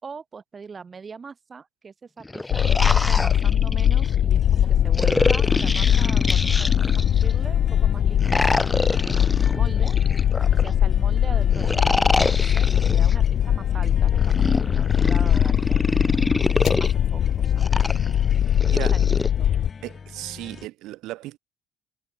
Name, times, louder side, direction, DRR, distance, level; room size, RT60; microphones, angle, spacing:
voice 1, 0.0-8.5 9.0-10.0 10.5-14.3 14.6-15.8 16.5-17.6 18.6-19.5, right 5 dB, 35° right, 5.1 m, -41 dB
sound 1, 2.2-4.1 4.9-7.3 8.2-10.7 11.5-13.1 14.1-16.9 17.6-19.3, left 2 dB, 15° left, 0.5 m, -26 dB
sound 2, 2.5-19.7, left 10 dB, 60° left, 0.3 m, -21 dB
sound 3, 4.3-20.7, left 5 dB, 35° left, 1.1 m, -40 dB
voice 2, 18.7-19.0 19.8-21.4, right 17 dB, 80° right, 0.8 m, -35 dB
cardioid pair, 90°, 0 cm